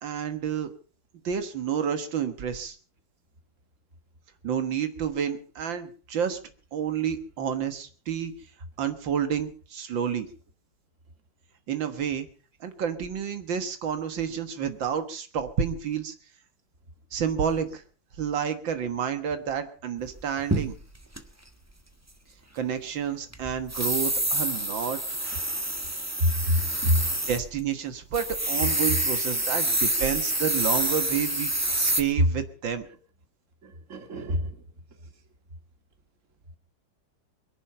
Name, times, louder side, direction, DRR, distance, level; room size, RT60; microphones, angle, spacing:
voice 1, 0.0-0.7 1.2-2.8 4.4-6.4 6.7-8.3 8.8-10.3 11.7-12.3 12.6-16.1 17.1-17.8 18.2-20.8 22.5-25.4 27.3-31.5 31.8-32.8, right 8 dB, 80° right, 2.2 m, -29 dB
sound 1, 20.2-21.2 23.3-27.4 27.7-27.8 28.1-32.0, right 1 dB, 10° right, 1.3 m, -27 dB
voice 2, 26.2-27.1 33.6-34.6, left 1 dB, 40° right, 2.4 m, -26 dB
22.5 x 11.0 x 5.6 m
omnidirectional pair, 2.0 m